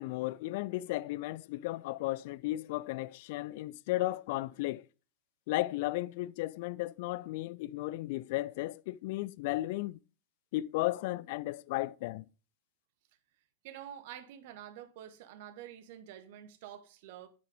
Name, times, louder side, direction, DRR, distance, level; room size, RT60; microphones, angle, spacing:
voice 1, 0.0-4.9 5.5-10.0 10.5-12.3, left 18 dB, 50° left, 0.3 m, -34 dB
voice 2, 13.6-17.3, right 11 dB, 50° right, 1.2 m, -48 dB
9.5 x 9.1 x 3.6 m
figure-of-eight pair, 90°, 0 cm